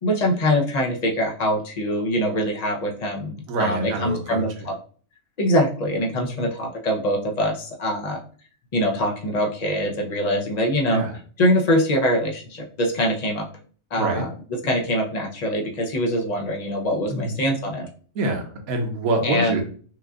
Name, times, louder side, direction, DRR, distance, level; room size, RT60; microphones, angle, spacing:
voice 1, 0.0-4.8 5.4-8.2 8.7-11.0 11.4-13.5 13.9-14.3 14.6-17.9 19.2-19.6, equal, 35° left, 0 dB, 0.7 m, -23 dB
voice 2, 3.5-4.4 6.2-6.5 10.9-11.1 14.0-14.2 17.1-17.3 18.1-19.6, right 2 dB, 65° right, 3 dB, 1.3 m, -26 dB
5.8 x 2.7 x 2.5 m, 0.44 s
omnidirectional pair, 1.7 m